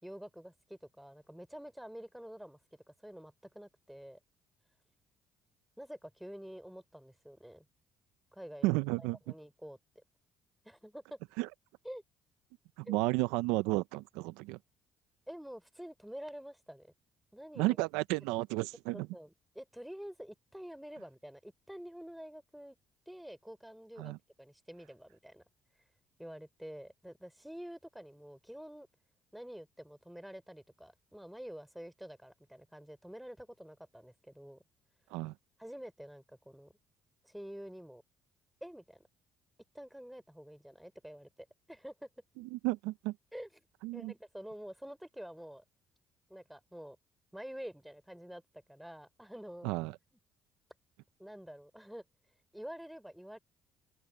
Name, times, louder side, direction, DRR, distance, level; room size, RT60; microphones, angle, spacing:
voice 1, 0.0-2.6 3.0-4.2 5.8-7.7 8.3-10.0 10.7-11.2 11.8-12.0 12.9-13.0 15.3-16.9 17.3-17.8 18.9-22.8 23.1-24.1 24.4-25.4 26.2-28.9 29.3-34.6 35.6-36.7 37.2-38.0 38.6-39.1 39.7-42.1 43.3-43.6 43.9-45.6 46.3-47.0 47.3-48.4 48.7-49.7 51.2-52.0 52.5-53.4, equal, 5° right, 3.5 m, -48 dB
voice 2, 8.6-9.2 11.4-11.5 12.8-14.6 17.6-19.1 24.0-24.2 35.1-35.3 42.4-43.1 43.8-44.1 49.6-50.0, right 21 dB, 80° right, 0.7 m, -32 dB
open air
supercardioid pair, 65°, 0 cm